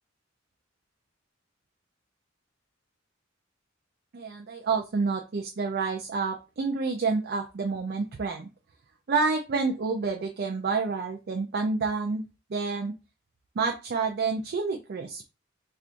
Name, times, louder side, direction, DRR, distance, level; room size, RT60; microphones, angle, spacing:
voice 1, 4.1-8.5 9.1-12.2 12.5-12.9 13.6-15.2, right 4 dB, 55° right, 2 dB, 0.4 m, -28 dB
4.4 x 2.4 x 2.5 m, 0.30 s
head